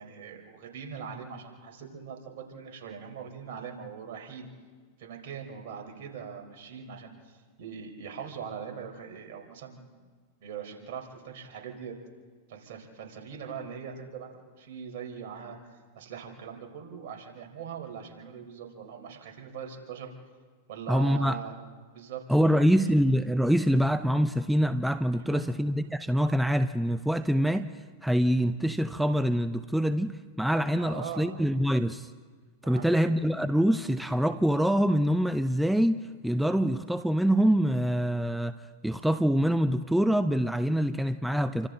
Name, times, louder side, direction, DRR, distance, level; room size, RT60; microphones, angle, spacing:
voice 1, 0.0-4.5 5.0-9.8 10.4-11.9 12.5-14.3 14.6-20.1 20.7-21.6 21.9-22.8 25.1-25.4 30.8-31.4 32.6-33.1, right 7 dB, 60° right, 2 dB, 4.6 m, -41 dB
voice 2, 20.9-21.4 22.3-27.7 28.0-32.1 32.6-38.5 38.8-41.7, equal, ahead, 10 dB, 0.7 m, -25 dB
29.0 x 25.0 x 4.0 m, 1.5 s
hypercardioid pair, 110°, 0 cm